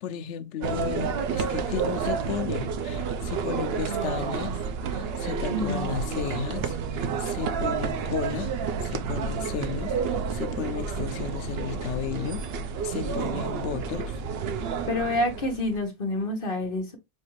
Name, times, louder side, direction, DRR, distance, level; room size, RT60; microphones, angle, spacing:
voice 1, 0.0-4.6 4.9-8.5 8.8-12.4 12.8-14.1, left 8 dB, 85° left, 0.9 m, -34 dB
sound 1, 0.6-15.8, right 5 dB, 65° right, 0.8 m, -30 dB
voice 2, 5.5-5.9 14.9-17.0, left 1 dB, 50° left, 1.2 m, -28 dB
6.3 x 2.5 x 3.0 m
omnidirectional pair, 1.2 m